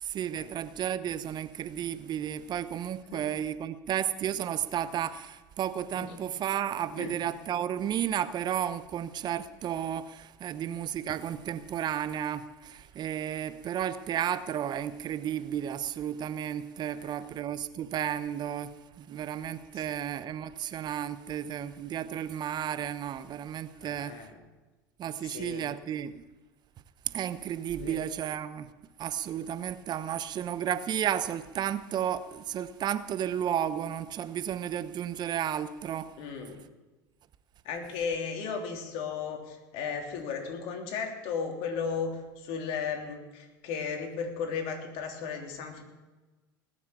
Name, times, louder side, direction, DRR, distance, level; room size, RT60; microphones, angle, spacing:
voice 1, 0.0-24.3 25.0-26.2 27.1-28.7 29.0-36.1, right 10 dB, 40° right, 0.9 m, -33 dB
voice 2, 17.0-17.3 19.7-20.0 23.8-24.4 25.2-25.7 27.8-28.0 36.2-36.6 37.7-45.8, left 6 dB, 60° left, 3.4 m, -35 dB
19.0 x 7.1 x 8.4 m
hypercardioid pair, 95°, 11 cm